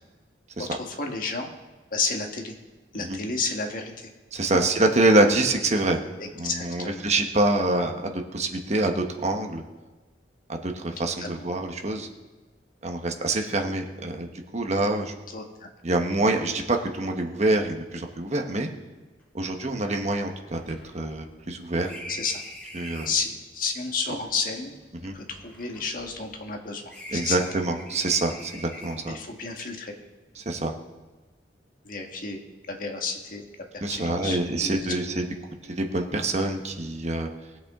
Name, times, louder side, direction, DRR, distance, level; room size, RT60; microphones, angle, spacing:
voice 1, 0.6-1.5 1.9-2.5 2.9-4.1 4.5-4.6 6.2-7.0 11.0-11.4 15.3-15.7 22.1-22.4 23.0-24.7 25.1-27.4 29.0-29.9 31.8-32.4 32.7-33.5 33.7-34.7, left 4 dB, 50° left, 3 dB, 1.5 m, -31 dB
voice 2, 4.3-6.0 6.4-9.6 10.5-12.1 12.8-15.1 15.8-18.7 19.3-21.9 22.7-23.1 25.0-25.2 27.1-29.2 30.4-30.7 33.8-35.2 35.7-37.3, right 2 dB, 40° right, 3 dB, 1.2 m, -26 dB
sound 1, 19.2-19.3 19.5-19.6 20.0-23.3 24.2-26.6 26.9-29.2, equal, 10° left, 3.3 m, -44 dB
20.0 x 7.9 x 3.7 m, 1.3 s
head